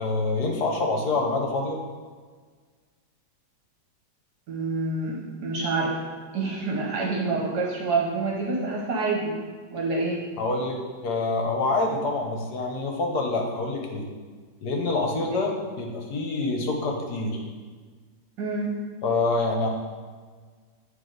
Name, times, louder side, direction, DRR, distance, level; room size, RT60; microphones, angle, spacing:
voice 1, 0.0-1.8 10.4-14.1 14.6-15.5 15.8-17.5 19.0-19.7, left 3 dB, 65° left, 1 dB, 1.3 m, -26 dB
voice 2, 4.5-5.9 6.3-9.3 9.7-10.2 15.3-15.4 18.4-18.7, right 3 dB, 65° right, -2 dB, 1.4 m, -27 dB
9.4 x 3.2 x 3.9 m, 1.5 s
omnidirectional pair, 2.0 m